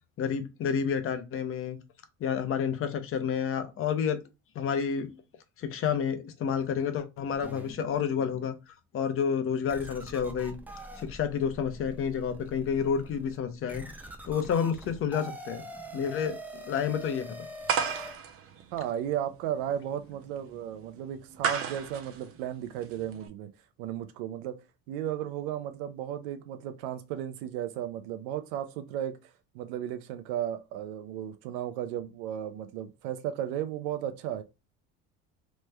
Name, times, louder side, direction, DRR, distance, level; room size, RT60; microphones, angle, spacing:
voice 1, 0.2-1.8 2.2-4.2 4.5-5.2 5.6-8.5 8.9-10.6 11.0-13.8 14.2-15.6 15.9-16.4 16.7-17.5, left 7 dB, 45° left, 0.7 m, -29 dB
sound 1, 7.3-8.5 9.0-9.2 9.7-18.2, right 1 dB, 5° right, 0.5 m, -44 dB
sound 2, 17.7-23.3, right 7 dB, 50° right, 0.7 m, -34 dB
voice 2, 18.7-23.5 23.8-24.6 24.9-29.3 29.5-34.4, right 10 dB, 90° right, 0.5 m, -34 dB
3.1 x 2.1 x 3.3 m
supercardioid pair, 100°, 30 cm